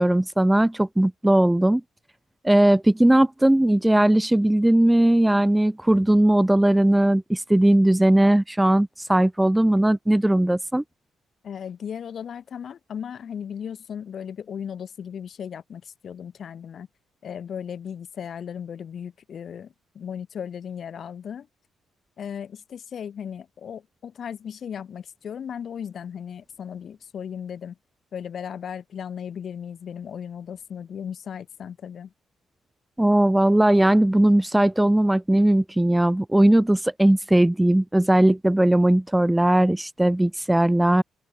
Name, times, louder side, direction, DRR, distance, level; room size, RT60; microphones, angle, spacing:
voice 1, 0.0-1.8 2.4-10.8 33.0-41.0, right 1 dB, 10° right, 0.5 m, -19 dB
voice 2, 11.4-16.9 17.2-21.5 22.2-27.8 28.1-32.1, left 8 dB, 55° left, 1.6 m, -36 dB
cardioid pair, 90°, 0 cm